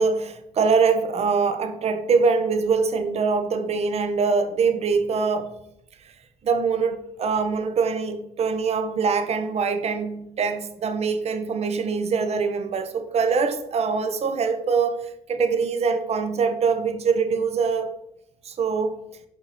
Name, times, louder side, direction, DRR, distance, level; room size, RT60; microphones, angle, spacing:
voice 1, 0.0-5.5 6.4-15.0 15.3-17.9 18.4-19.0, right 5 dB, 40° right, 0.7 m, -23 dB
5.3 x 4.4 x 4.0 m
cardioid pair, 110°, 17 cm